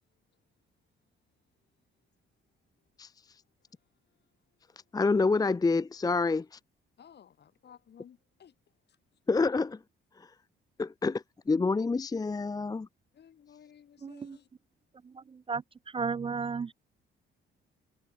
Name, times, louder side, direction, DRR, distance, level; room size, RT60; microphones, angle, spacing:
voice 1, 4.9-6.6 9.3-9.8 10.2-10.3 10.8-12.9, left 3 dB, 20° left, 0.6 m, -27 dB
voice 2, 7.0-8.5 8.9-9.0 13.1-14.5, left 8 dB, 60° left, 6.3 m, -56 dB
voice 3, 14.0-14.4 15.5-15.6 15.9-16.7, right 5 dB, 25° right, 0.5 m, -32 dB
cardioid pair, 90°, 20 cm